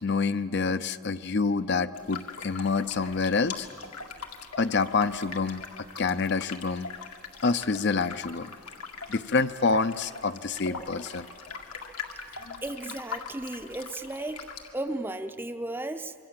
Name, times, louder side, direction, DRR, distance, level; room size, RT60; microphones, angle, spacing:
voice 1, 0.0-3.7 4.6-5.6 6.0-6.9 7.4-8.5 9.1-11.3 12.4-12.6, left 4 dB, 50° left, 12 dB, 0.5 m, -27 dB
sound 1, 1.9-14.7, left 5 dB, 90° left, 2.1 m, -42 dB
voice 2, 12.6-14.5 14.7-16.1, right 1 dB, 10° right, 9 dB, 0.6 m, -34 dB
26.0 x 24.0 x 7.6 m, 2.4 s
head